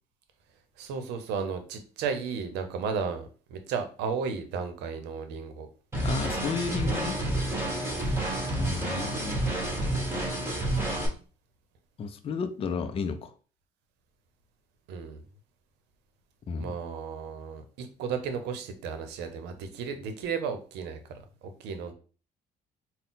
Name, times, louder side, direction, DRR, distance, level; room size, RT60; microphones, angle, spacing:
voice 1, 0.8-5.7 7.8-8.1 14.9-15.2 16.6-21.9, right 6 dB, 85° right, 0.7 m, -34 dB
sound 1, 5.9-11.1, right 1 dB, 15° right, 1.6 m, -29 dB
voice 2, 6.0-7.2 8.6-9.4 12.0-13.3 16.5-16.7, left 5 dB, 35° left, 0.4 m, -32 dB
3.9 x 2.1 x 3.9 m
cardioid pair, 110°, 17 cm